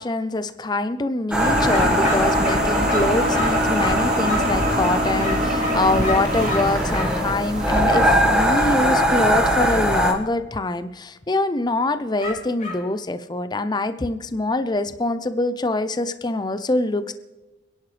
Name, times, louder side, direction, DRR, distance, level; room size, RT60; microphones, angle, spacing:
voice 1, 0.0-17.1, left 2 dB, 20° left, 11 dB, 0.6 m, -24 dB
sound 1, 1.3-10.1, equal, 5° right, 1.7 m, -22 dB
sound 2, 1.4-8.1, equal, 45° right, 3.5 m, -24 dB
sound 3, 1.7-4.6 5.2-7.2 7.9-8.1 12.2-12.9, left 2 dB, 40° left, 4.7 m, -31 dB
28.0 x 10.5 x 3.3 m, 1.1 s
head